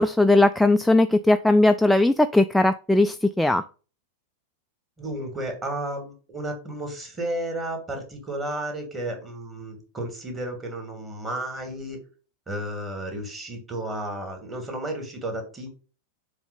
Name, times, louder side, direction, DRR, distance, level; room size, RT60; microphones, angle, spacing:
voice 1, 0.0-3.6, left 2 dB, ahead, 9 dB, 0.3 m, -19 dB
voice 2, 5.0-12.0 12.5-15.7, right 1 dB, 20° right, 3 dB, 2.8 m, -32 dB
7.0 x 3.4 x 5.5 m, 0.36 s
figure-of-eight pair, 90°, 0 cm